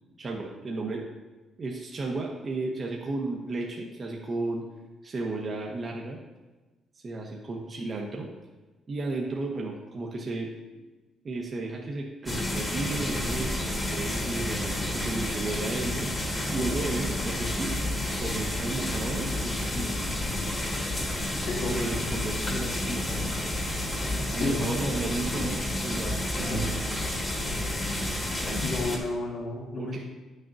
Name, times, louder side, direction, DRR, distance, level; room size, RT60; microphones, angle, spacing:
voice 1, 0.2-1.0 1.6-4.7 5.0-6.2 7.0-8.3 8.9-10.5 11.2-16.1 16.5-17.8 18.2-20.0 21.6-23.3 24.3-26.7 29.8-30.0, right 2 dB, 40° right, -1 dB, 1.0 m, -33 dB
sound 1, 12.3-29.0, left 1 dB, 25° left, 1.6 m, -30 dB
voice 2, 21.4-21.8 24.4-24.5 26.3-26.7 28.6-30.1, left 2 dB, 70° left, -2 dB, 1.7 m, -32 dB
9.9 x 6.4 x 2.6 m, 1.2 s
cardioid pair, 90°, 0 cm